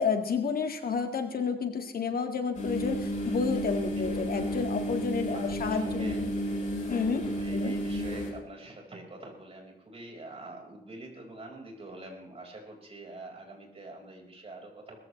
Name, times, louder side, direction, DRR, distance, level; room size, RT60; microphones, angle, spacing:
voice 1, 0.0-6.2 6.9-7.2 7.5-7.7, left 6 dB, 65° left, 6 dB, 1.8 m, -30 dB
sound 1, 2.5-8.3, equal, 45° left, 4.4 m, -32 dB
voice 2, 5.2-6.2 7.4-15.0, right 2 dB, 35° right, 0 dB, 5.1 m, -45 dB
21.0 x 14.5 x 3.3 m, 0.87 s
cardioid pair, 95°, 17 cm